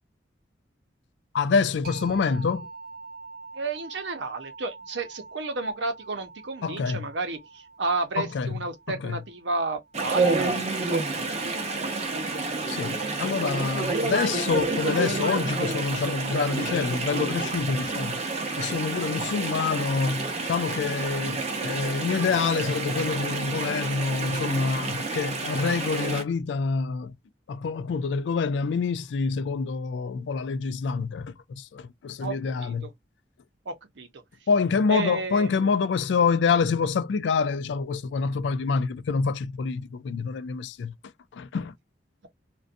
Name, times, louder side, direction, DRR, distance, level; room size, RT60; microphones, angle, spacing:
voice 1, 1.3-2.7 6.6-7.1 8.2-8.6 9.0-9.2 12.7-18.2 18.6-27.1 27.5-32.9 34.5-40.9 41.3-41.7, left 5 dB, 70° left, 0.3 m, -26 dB
sound 1, 1.8-11.2, right 3 dB, 55° right, 1.0 m, -46 dB
voice 2, 3.5-11.0 32.2-32.9 33.7-34.1 34.9-35.7, right 3 dB, 70° right, 0.7 m, -32 dB
Chatter / Stream, 9.9-26.2, right 3 dB, 35° right, 0.6 m, -29 dB
2.5 x 2.2 x 2.5 m
head